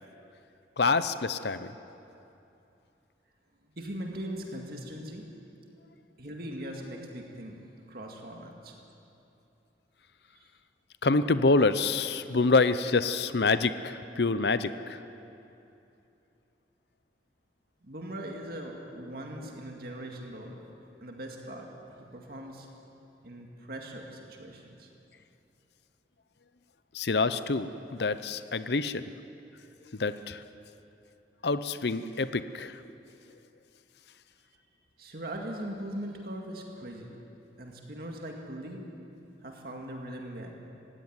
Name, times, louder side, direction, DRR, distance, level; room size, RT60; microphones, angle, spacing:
voice 1, 0.8-1.7 11.0-15.0 26.9-29.1 29.9-30.4 31.4-32.8, left 3 dB, 65° left, 13 dB, 0.7 m, -26 dB
voice 2, 3.7-5.3 6.2-7.6 7.9-8.8 17.8-20.6 21.0-22.7 23.2-24.9 35.0-37.1 37.6-38.8 39.4-40.5, right 1 dB, 55° right, 1 dB, 2.2 m, -40 dB
18.0 x 16.0 x 9.5 m, 2.8 s
head